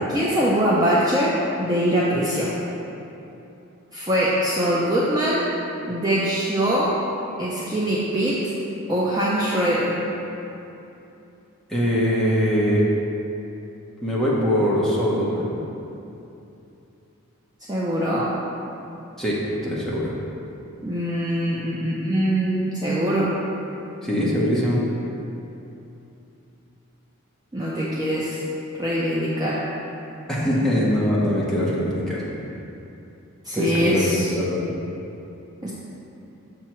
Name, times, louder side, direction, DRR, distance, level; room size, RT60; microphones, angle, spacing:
voice 1, 0.1-2.5 3.9-5.5 5.9-7.0 7.4-8.4 8.9-10.0 17.7-18.3 20.8-23.4 27.5-28.4 28.8-29.6 33.4-34.3 35.6-35.7, equal, 15° right, -7 dB, 0.5 m, -22 dB
voice 2, 11.7-12.9 14.0-15.5 19.2-20.1 24.0-24.8 30.3-32.2 33.5-34.7, equal, ahead, -7 dB, 0.9 m, -22 dB
6.5 x 3.0 x 5.8 m, 2.8 s
head